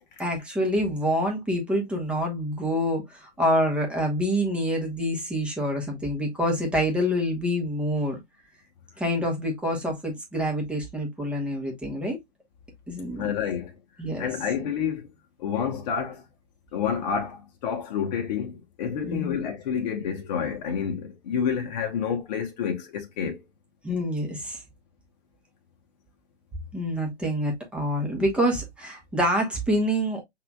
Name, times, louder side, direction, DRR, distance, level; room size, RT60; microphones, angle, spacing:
voice 1, 0.2-8.2 9.0-12.2 12.9-13.2 14.0-14.3 19.0-19.4 23.8-24.6 26.7-30.2, equal, 5° right, 1.0 m, -26 dB
voice 2, 13.2-13.8 14.2-15.1 15.4-16.2 16.7-23.4, left 7 dB, 35° left, 1.0 m, -29 dB
5.7 x 3.4 x 2.3 m
figure-of-eight pair, 130°, 36 cm